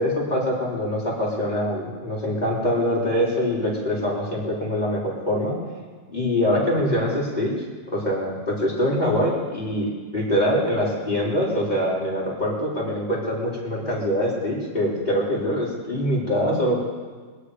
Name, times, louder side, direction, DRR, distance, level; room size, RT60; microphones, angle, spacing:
voice 1, 0.0-5.5 6.1-7.5 7.9-16.8, equal, 35° left, -5 dB, 4.3 m, -24 dB
25.5 x 9.5 x 5.0 m, 1.5 s
omnidirectional pair, 1.3 m